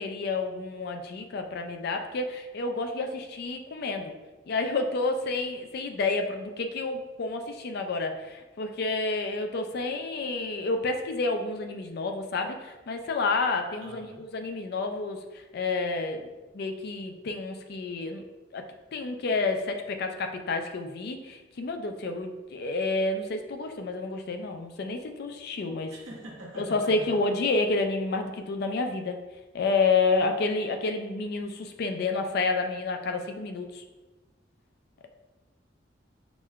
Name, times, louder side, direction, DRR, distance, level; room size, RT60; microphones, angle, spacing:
voice 1, 0.0-4.1 4.5-16.3 16.5-18.3 18.5-25.9 26.6-29.2 29.5-33.8, left 3 dB, 55° left, 6 dB, 0.4 m, -29 dB
voice 2, 13.8-14.3 25.9-27.2, right 1 dB, 80° right, -2 dB, 0.9 m, -44 dB
6.0 x 2.2 x 2.3 m, 1.2 s
head